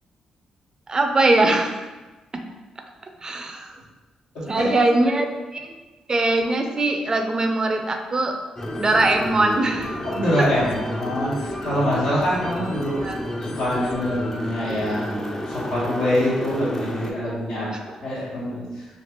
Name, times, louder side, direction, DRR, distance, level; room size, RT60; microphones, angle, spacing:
voice 1, 0.9-1.7 3.2-3.7 4.5-5.7 6.1-8.4 8.8-9.9 13.0-13.2 17.7-17.8, right 2 dB, 35° right, 4 dB, 0.4 m, -21 dB
voice 2, 4.3-4.7 10.0-13.0 13.4-17.7 18.0-18.9, equal, 90° left, -8 dB, 1.3 m, -25 dB
sound 1, 8.6-17.1, equal, 25° left, 0.4 m, -31 dB
3.2 x 2.5 x 2.9 m, 1.2 s
supercardioid pair, 60°, 2 cm